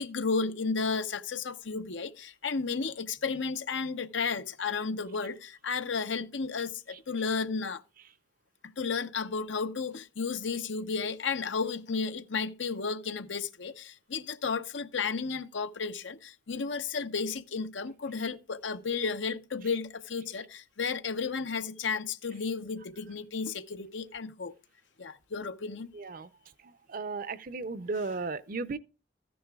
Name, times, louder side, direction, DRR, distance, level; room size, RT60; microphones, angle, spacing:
voice 1, 0.0-7.8 8.6-24.5 25.0-25.9 27.9-28.2, left 5 dB, 85° left, 0.8 m, -33 dB
voice 2, 26.9-28.8, right 3 dB, 50° right, 0.6 m, -34 dB
14.0 x 10.0 x 2.3 m
head